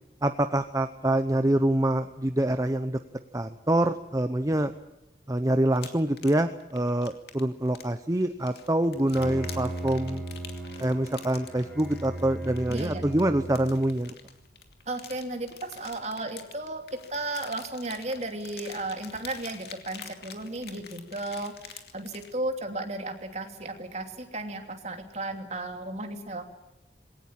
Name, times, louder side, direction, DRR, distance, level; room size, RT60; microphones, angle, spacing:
voice 1, 0.2-3.0 3.3-4.7 5.3-10.2 10.8-14.1, right 1 dB, 20° right, 9 dB, 0.8 m, -25 dB
sound 1, 5.7-22.3, left 7 dB, 60° left, 2.6 m, -47 dB
Bowed string instrument, 8.9-14.0, right 1 dB, 10° left, 7.9 m, -37 dB
voice 2, 12.7-13.0 14.9-16.8 17.1-26.6, right 2 dB, 40° right, 5 dB, 2.9 m, -34 dB
21.5 x 18.0 x 9.0 m, 0.93 s
head